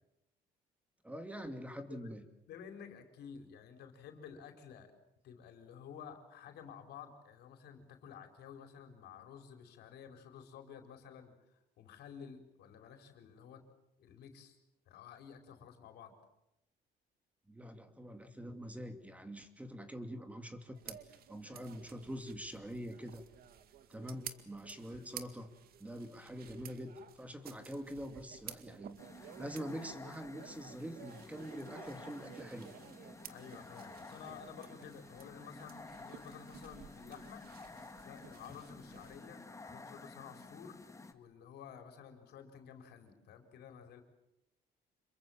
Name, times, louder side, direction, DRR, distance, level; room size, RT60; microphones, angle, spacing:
voice 1, 1.0-2.2 17.5-23.2 23.9-25.5 25.8-29.0 29.4-32.7, equal, 10° right, 8 dB, 2.4 m, -45 dB
voice 2, 1.8-2.1 2.5-4.9 5.2-13.6 14.0-14.6 14.9-16.1 24.9-25.0 33.3-37.4 38.0-40.8 41.1-44.0, left 7 dB, 75° left, 6 dB, 4.5 m, -52 dB
sound 1, 20.7-39.2, right 10 dB, 65° right, 2.1 m, -54 dB
sound 2, 29.0-41.1, left 3 dB, 20° left, 2.1 m, -52 dB
27.5 x 23.0 x 7.4 m, 0.86 s
cardioid pair, 110°, 17 cm